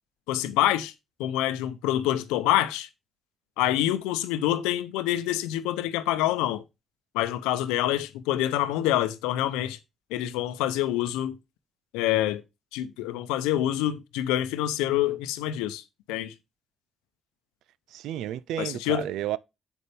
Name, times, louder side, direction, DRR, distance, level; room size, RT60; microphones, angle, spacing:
voice 1, 0.3-0.9 1.2-2.9 3.6-6.6 7.1-9.8 10.1-11.4 11.9-12.4 12.7-15.8 16.1-16.3 18.6-19.0, left 13 dB, 90° left, 0.7 m, -26 dB
voice 2, 17.9-19.4, right 12 dB, 80° right, 0.4 m, -31 dB
8.1 x 6.8 x 3.4 m
supercardioid pair, 50°, 0 cm